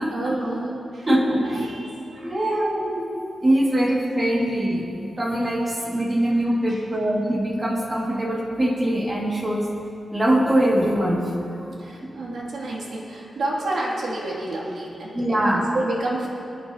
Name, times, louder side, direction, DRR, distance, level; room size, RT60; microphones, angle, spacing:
voice 1, 0.1-1.1 1.4-2.6 6.2-6.3 6.7-6.9 11.8-16.3, right 2 dB, 70° right, -4 dB, 2.6 m, -30 dB
voice 2, 1.1-1.6 2.2-3.1 3.4-9.7 10.1-11.2 15.1-15.6, right 1 dB, 20° right, -3 dB, 2.2 m, -22 dB
26.0 x 9.1 x 2.9 m, 2.7 s
wide cardioid pair, 160°, 0 cm